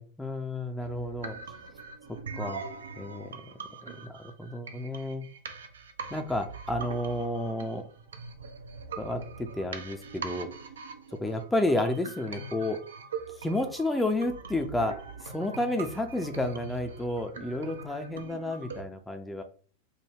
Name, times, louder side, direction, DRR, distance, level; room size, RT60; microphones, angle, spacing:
voice 1, 0.0-1.4 2.3-2.6 3.0-3.3 3.8-5.3 6.1-7.8 9.0-10.5 11.1-12.8 13.3-19.4, left 1 dB, 5° left, 5 dB, 0.4 m, -31 dB
sound 1, 0.8-18.8, right 4 dB, 65° right, 0.5 m, -42 dB
4.7 x 2.1 x 3.3 m, 0.43 s
figure-of-eight pair, 90°, 0 cm